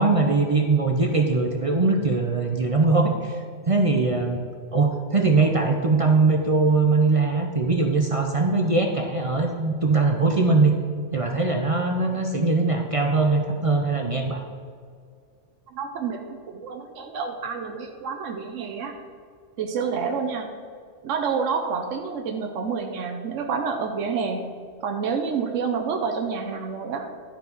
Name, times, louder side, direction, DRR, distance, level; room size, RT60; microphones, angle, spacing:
voice 1, 0.0-4.4 4.7-10.7 11.1-14.4, right 3 dB, 40° right, 3 dB, 0.5 m, -21 dB
voice 2, 15.7-19.0 19.6-20.5 21.0-24.5 24.8-27.1, right 5 dB, 90° right, 4 dB, 1.1 m, -28 dB
12.0 x 4.5 x 5.3 m, 2.1 s
omnidirectional pair, 1.2 m